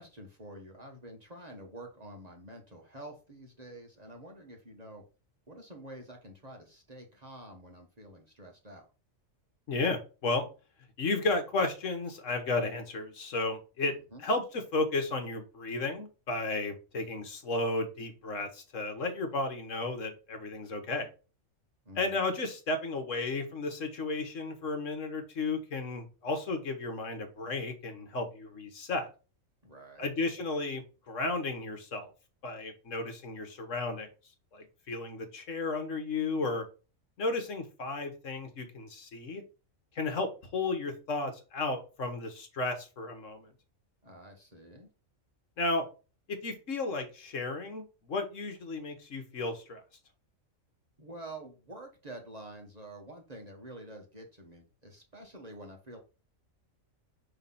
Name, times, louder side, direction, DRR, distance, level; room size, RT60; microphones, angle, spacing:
voice 1, 0.0-5.0 5.5-8.9 13.8-14.2 21.8-22.3 29.6-30.1 44.0-44.9 51.0-56.0, right 1 dB, 30° right, 1 dB, 1.2 m, -48 dB
voice 2, 9.7-10.5 11.0-13.9 14.2-21.1 22.0-29.1 30.0-32.1 32.4-34.1 34.5-36.6 37.2-39.4 39.9-43.5 45.6-45.8 46.3-49.8, left 3 dB, 65° left, 6 dB, 1.6 m, -33 dB
5.7 x 3.4 x 5.5 m, 0.33 s
omnidirectional pair, 1.4 m